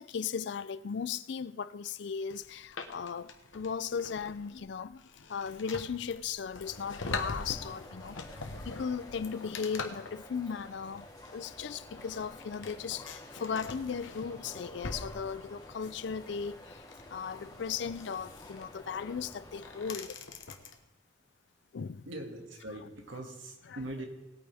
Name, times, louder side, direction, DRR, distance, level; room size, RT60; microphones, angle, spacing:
voice 1, 0.0-5.0 5.3-8.2 8.6-16.8 17.1-20.1 21.7-22.1 23.7-23.8, left 6 dB, 65° left, 0.4 m, -37 dB
sound 1, 2.3-20.7, left 3 dB, 80° left, 1.2 m, -44 dB
sound 2, 6.6-19.9, left 1 dB, 20° left, 2.5 m, -50 dB
voice 2, 22.1-24.1, right 1 dB, 80° right, 2.1 m, -41 dB
19.0 x 8.9 x 3.5 m
head